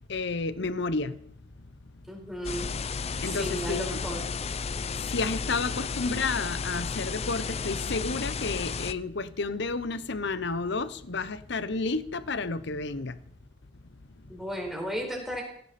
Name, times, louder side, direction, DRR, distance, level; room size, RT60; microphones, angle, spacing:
voice 1, 0.1-1.2 1.6-1.7 3.2-4.0 5.0-13.2, left 3 dB, 60° left, 0.9 m, -31 dB
voice 2, 2.1-2.6 3.2-4.2 14.3-15.4, equal, ahead, 4.5 m, -34 dB
sound 1, 2.4-8.9, left 5 dB, 30° left, 0.5 m, -33 dB
16.5 x 15.5 x 4.3 m
head